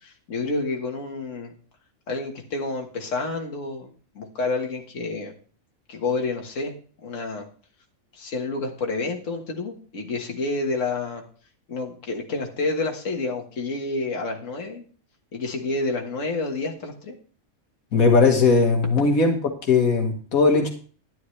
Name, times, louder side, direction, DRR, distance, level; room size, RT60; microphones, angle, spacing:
voice 1, 0.0-1.5 2.1-3.9 4.2-5.3 5.9-6.7 7.0-7.5 8.1-11.2 11.7-14.8 15.3-17.1, left 3 dB, 65° left, 1.8 m, -29 dB
voice 2, 17.9-19.4 19.6-20.7, left 4 dB, 85° left, 1.8 m, -18 dB
11.0 x 10.5 x 3.2 m
omnidirectional pair, 1.4 m